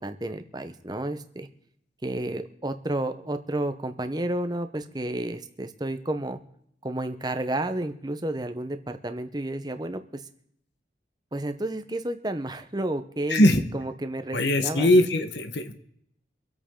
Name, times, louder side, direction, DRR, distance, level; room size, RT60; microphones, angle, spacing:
voice 1, 0.0-1.5 2.0-6.4 6.8-10.2 11.3-15.1, right 1 dB, 20° right, 9 dB, 0.9 m, -31 dB
voice 2, 13.3-13.6 14.3-15.7, left 1 dB, 70° left, 7 dB, 1.2 m, -20 dB
25.5 x 8.5 x 3.8 m, 0.70 s
head